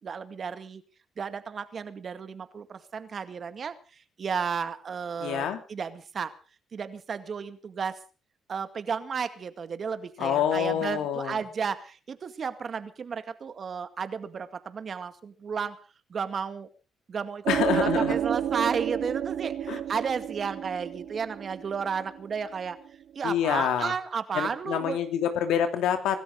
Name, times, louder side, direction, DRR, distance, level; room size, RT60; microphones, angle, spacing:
voice 1, 0.0-0.8 1.2-6.3 6.7-8.0 8.5-15.8 16.1-16.7 17.1-17.5 17.7-22.8 23.2-25.0, right 6 dB, 45° right, 10 dB, 2.1 m, -33 dB
voice 2, 5.2-5.6 10.2-11.4 17.5-18.2 19.7-19.8 23.2-23.9 24.3-26.2, left 9 dB, 90° left, 7 dB, 2.9 m, -27 dB
sound 1, 17.5-22.7, right 10 dB, 75° right, 1.4 m, -30 dB
25.0 x 13.5 x 3.8 m, 0.35 s
cardioid pair, 90°, 0 cm